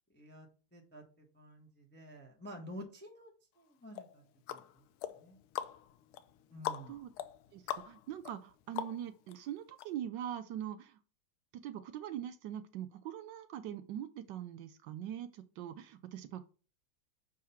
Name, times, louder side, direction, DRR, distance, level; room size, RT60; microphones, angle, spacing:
voice 1, 0.1-4.2 4.5-4.6 5.1-5.4 6.5-7.0, equal, 10° left, 1 dB, 0.7 m, -50 dB
sound 1, 3.9-9.3 9.8-9.9, left 11 dB, 80° left, 1.4 m, -43 dB
voice 2, 7.5-11.0 11.5-16.5, right 10 dB, 80° right, 11 dB, 1.0 m, -42 dB
6.5 x 3.7 x 5.6 m, 0.37 s
omnidirectional pair, 2.4 m